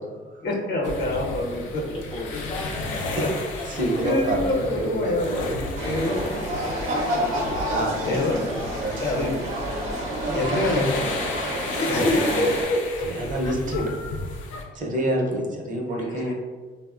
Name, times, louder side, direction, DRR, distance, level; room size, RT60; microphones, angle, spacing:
voice 1, 0.4-1.8 4.0-6.3 8.1-8.4 9.0-9.5 10.3-10.9 11.9-13.4 16.0-16.3, left 1 dB, 60° left, -1 dB, 0.7 m, -26 dB
sound 1, 0.8-14.6, left 3 dB, 90° left, 0.4 m, -33 dB
voice 2, 1.9-4.0 6.1-6.3 7.1-8.9, left 2 dB, 30° left, -4 dB, 0.4 m, -37 dB
voice 3, 3.7-5.5 7.7-8.4 8.8-8.9 10.3-10.8 11.9-12.1 13.0-13.9 14.7-16.3, right 1 dB, 40° right, 0 dB, 0.6 m, -27 dB
sound 2, 5.7-12.6, right 1 dB, 85° right, 0.7 m, -29 dB
3.4 x 2.1 x 2.3 m, 1.4 s
cardioid pair, 90°, 20 cm